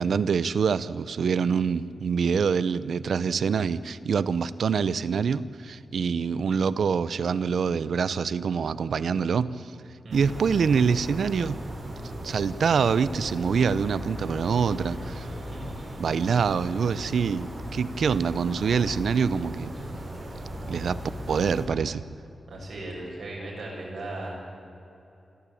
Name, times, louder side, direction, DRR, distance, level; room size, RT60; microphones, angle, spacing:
voice 1, 0.0-9.7 10.1-11.6 12.2-15.3 16.0-19.7 20.7-21.0 21.3-22.0, right 6 dB, 70° right, 15 dB, 0.7 m, -25 dB
sound 1, 10.1-21.7, equal, 25° right, 4.4 m, -37 dB
voice 2, 22.5-24.4, right 2 dB, 50° right, -3 dB, 7.2 m, -37 dB
26.5 x 14.0 x 8.6 m, 2.8 s
wide cardioid pair, 170°, 0 cm